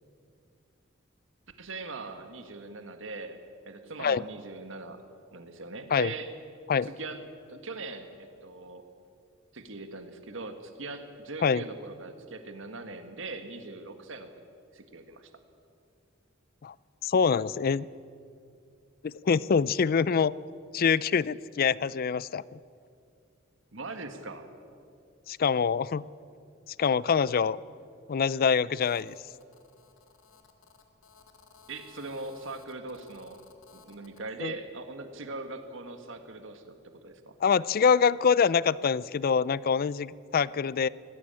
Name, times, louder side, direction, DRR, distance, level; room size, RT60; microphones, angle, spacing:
voice 1, 1.6-3.4 3.7-5.0 5.3-6.3 6.8-7.2 7.5-8.8 9.5-14.3 14.7-15.3 23.7-24.5 31.7-33.4 33.7-36.8 37.0-37.3, right 3 dB, 70° right, 7 dB, 1.7 m, -41 dB
voice 2, 17.0-17.9 19.0-20.3 20.7-22.6 25.3-26.0 26.8-27.6 28.1-29.1 34.4-34.5 37.4-40.9, left 6 dB, 45° left, 20 dB, 0.4 m, -25 dB
Telephone, 28.8-34.2, left 5 dB, 85° left, 2.1 m, -57 dB
20.5 x 15.5 x 8.9 m, 2.4 s
head